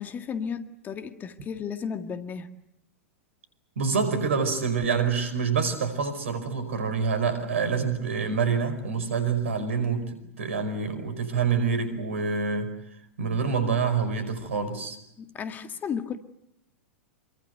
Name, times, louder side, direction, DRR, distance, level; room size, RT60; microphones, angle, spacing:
voice 1, 0.0-2.5 15.2-16.2, left 6 dB, 25° left, 1.9 m, -34 dB
voice 2, 3.8-12.7 13.2-15.0, right 5 dB, 65° right, 5.0 m, -26 dB
27.0 x 23.5 x 8.0 m
figure-of-eight pair, 100°, 7 cm